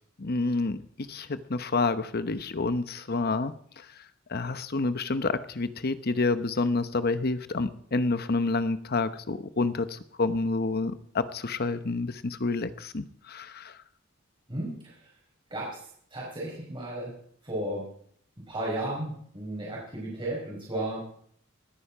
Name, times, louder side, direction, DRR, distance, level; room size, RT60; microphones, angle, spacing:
voice 1, 0.2-3.5 4.3-13.7, left 3 dB, 50° left, 12 dB, 0.9 m, -28 dB
voice 2, 16.1-17.1 17.4-17.8 18.5-21.0, right 1 dB, 25° right, -5 dB, 5.1 m, -33 dB
19.0 x 10.0 x 4.9 m, 0.63 s
head